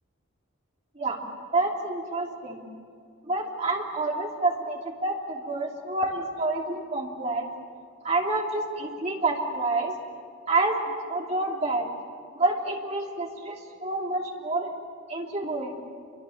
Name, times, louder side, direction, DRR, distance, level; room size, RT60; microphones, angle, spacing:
voice 1, 1.5-2.6 3.2-7.5 8.0-10.0 10.5-10.8 11.1-11.9 12.3-14.7 15.1-15.8, right 2 dB, 30° right, -1 dB, 3.2 m, -28 dB
29.0 x 24.0 x 7.4 m, 2.2 s
head